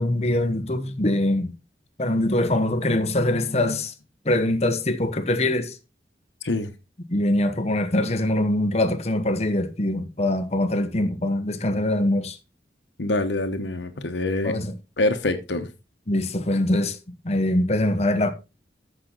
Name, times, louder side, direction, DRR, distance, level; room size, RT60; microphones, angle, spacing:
voice 1, 0.0-1.5 2.0-3.9 4.2-5.8 7.1-12.4 14.4-14.8 16.1-17.0 17.2-18.3, left 1 dB, 35° left, 1.1 m, -23 dB
voice 2, 13.0-14.5 15.0-15.7, left 2 dB, 90° left, 1.1 m, -25 dB
14.0 x 6.0 x 3.9 m
head